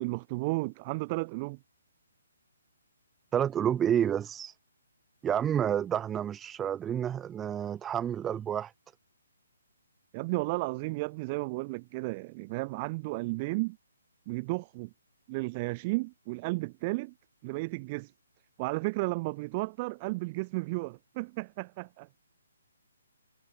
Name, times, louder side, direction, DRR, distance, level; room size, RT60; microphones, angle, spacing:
voice 1, 0.0-1.6 10.1-13.8 14.3-14.9 15.3-17.1 17.4-18.1 18.6-22.1, right 25 dB, 30° right, 0.9 m, -33 dB
voice 2, 3.3-4.5 5.2-8.7, right 9 dB, 15° right, 1.2 m, -29 dB
figure-of-eight pair, 135°, 0 cm